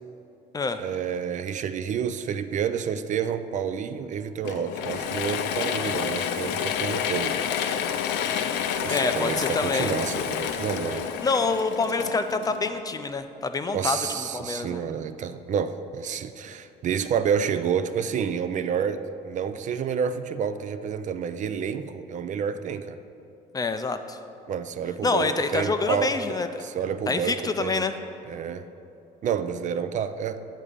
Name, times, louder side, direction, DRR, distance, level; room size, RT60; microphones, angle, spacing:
voice 1, 0.8-7.4 8.8-11.1 13.7-23.0 24.5-26.1 26.6-27.9 28.3-28.7 29.2-30.5, right 7 dB, 45° right, 11 dB, 0.4 m, -29 dB
Mechanisms / Drill, 4.4-13.1, left 8 dB, 85° left, 0.5 m, -29 dB
voice 2, 8.9-9.9 11.2-14.8 23.5-24.2 25.0-26.7 27.1-27.9, left 3 dB, 20° left, 9 dB, 0.4 m, -26 dB
8.7 x 3.6 x 6.7 m, 2.7 s
cardioid pair, 110°, 17 cm